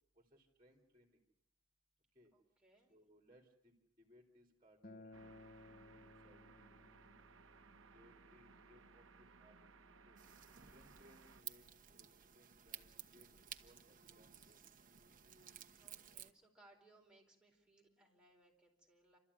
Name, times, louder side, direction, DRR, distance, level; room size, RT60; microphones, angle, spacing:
voice 1, 0.1-1.2 2.1-2.3 2.8-6.9 7.4-9.6 10.0-10.2 10.7-13.3 13.6-14.8, equal, 25° right, 3 dB, 3.0 m, -68 dB
voice 2, 2.3-2.9 15.8-19.2, right 2 dB, 5° right, -1 dB, 4.6 m, -68 dB
Acoustic guitar, 4.8-10.0, left 2 dB, 45° left, 0.9 m, -61 dB
sound 1, 5.1-11.4, right 4 dB, 75° right, 1.1 m, -63 dB
sound 2, 10.2-16.3, right 10 dB, 45° right, 1.3 m, -55 dB
28.5 x 13.5 x 9.7 m, 0.77 s
head